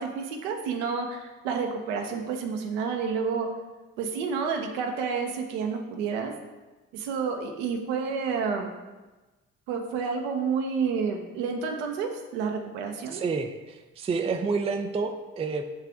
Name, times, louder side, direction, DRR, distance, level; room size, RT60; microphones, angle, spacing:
voice 1, 0.0-3.5 4.0-6.3 6.9-8.7 9.7-13.2, right 5 dB, 65° right, 3 dB, 0.8 m, -30 dB
voice 2, 13.1-15.6, right 4 dB, 15° right, 6 dB, 0.4 m, -29 dB
8.3 x 3.3 x 3.5 m, 1.2 s
figure-of-eight pair, 40°, 39 cm